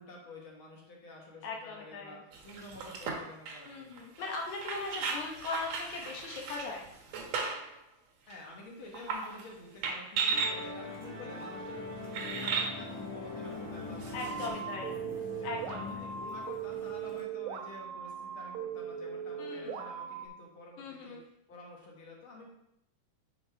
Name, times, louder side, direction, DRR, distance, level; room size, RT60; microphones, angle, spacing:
voice 1, 0.0-4.0 8.3-14.6 14.9-15.0 15.4-22.5, left 1 dB, 55° left, -2 dB, 1.7 m, -50 dB
voice 2, 1.4-2.2 3.7-6.8 14.1-15.0 15.4-16.1 19.4-19.8 20.8-21.2, left 3 dB, 70° left, 0 dB, 2.2 m, -39 dB
sound 1, 2.3-7.8 8.3-8.4 8.9-9.5 9.8-10.6 11.4-11.5 12.1-12.7 14.0-14.5, right 5 dB, 65° right, 2.0 m, -36 dB
Musical instrument, 10.3-17.2, left 2 dB, 10° left, 0.7 m, -42 dB
sound 2, 14.2-20.3, right 7 dB, 85° right, 2.2 m, -39 dB
8.9 x 5.3 x 3.4 m, 0.80 s
omnidirectional pair, 3.7 m